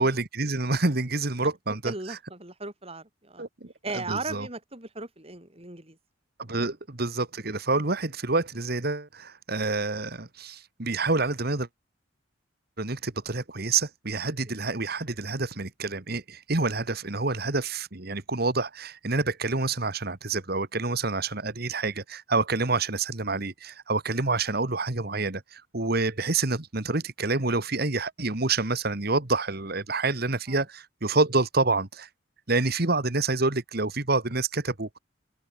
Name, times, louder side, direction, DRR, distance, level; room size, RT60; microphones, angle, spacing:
voice 1, 0.0-2.2 3.4-4.5 6.4-11.7 12.8-32.1 32.5-35.0, right 3 dB, 50° right, 1.9 m, -28 dB
voice 2, 1.7-3.5 3.8-6.0 30.5-30.6, right 3 dB, 30° right, 4.7 m, -37 dB
open air
head